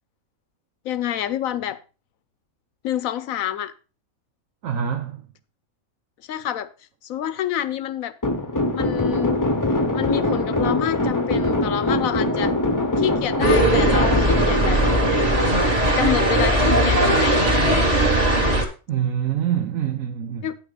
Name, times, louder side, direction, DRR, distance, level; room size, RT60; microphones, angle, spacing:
voice 1, 0.8-1.8 2.8-3.7 6.3-6.7 7.0-8.1 8.7-9.4 9.9-12.5 13.0-14.8 15.1-15.5 16.0-17.8 20.4-20.6, left 11 dB, 75° left, 1.1 m, -27 dB
voice 2, 4.6-5.3 18.9-20.5, right 9 dB, 70° right, 1.1 m, -25 dB
sound 1, 8.2-16.5, left 2 dB, 15° left, 0.8 m, -23 dB
sound 2, 13.4-18.6, right 1 dB, 25° right, 1.6 m, -19 dB
9.5 x 5.9 x 4.9 m
omnidirectional pair, 1.5 m